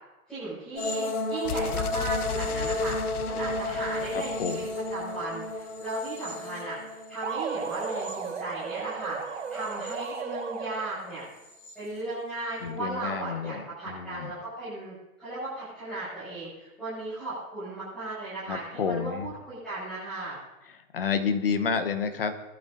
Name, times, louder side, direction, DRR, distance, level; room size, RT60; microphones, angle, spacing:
voice 1, 0.3-4.6 4.9-11.2 11.7-20.4, right 2 dB, ahead, -15 dB, 6.0 m, -36 dB
sound 1, 0.8-8.9 9.3-10.2 11.4-11.7, left 2 dB, 60° left, 5.3 m, -33 dB
sound 2, 1.4-5.3, left 7 dB, 85° left, 1.1 m, -36 dB
voice 2, 4.1-4.7 12.6-14.3 18.5-19.3 20.7-22.3, left 6 dB, 40° left, 8 dB, 1.1 m, -30 dB
sound 3, 7.2-11.1, right 6 dB, 55° right, 1.3 m, -35 dB
23.0 x 12.0 x 2.7 m, 1.0 s
hypercardioid pair, 175°, 43 cm